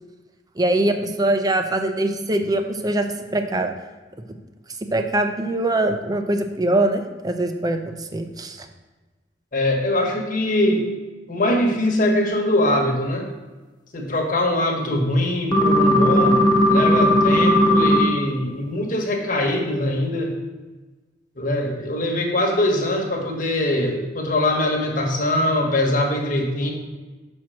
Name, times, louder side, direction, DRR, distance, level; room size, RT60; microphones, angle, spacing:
voice 1, 0.6-3.1 3.3-3.7 4.9-8.6, right 1 dB, 20° right, 6 dB, 0.5 m, -22 dB
voice 2, 9.5-10.9 11.3-13.3 13.9-16.4 16.7-20.3 21.4-26.7, left 1 dB, 50° left, 1 dB, 1.2 m, -22 dB
sound 1, 15.5-18.0, left 1 dB, 25° left, 1.1 m, -16 dB
5.9 x 4.4 x 6.3 m, 1.3 s
head